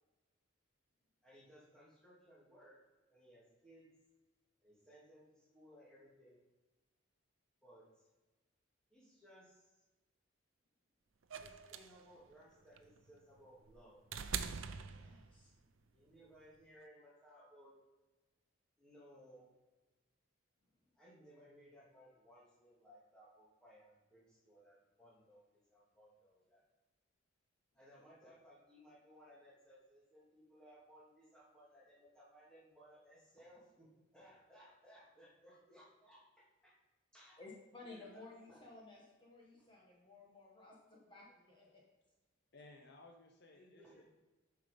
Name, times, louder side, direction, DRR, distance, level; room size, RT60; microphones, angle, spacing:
voice 1, 1.2-2.8 3.1-3.9 4.6-6.4 7.6-8.1 8.9-9.8 11.4-14.0 15.9-17.7 18.8-19.5 20.9-26.6 27.7-36.8 37.1-37.4 37.8-38.9 43.5-44.1, equal, 5° left, -7 dB, 2.4 m, -62 dB
sound 1, 11.3-15.6 16.8-16.9, right 7 dB, 75° right, 0.5 m, -44 dB
voice 2, 14.8-15.5 37.4-41.8, left 3 dB, 25° left, -3 dB, 1.4 m, -56 dB
voice 3, 42.5-44.1, left 2 dB, 55° left, 2 dB, 0.8 m, -59 dB
7.4 x 5.9 x 5.3 m, 1.2 s
head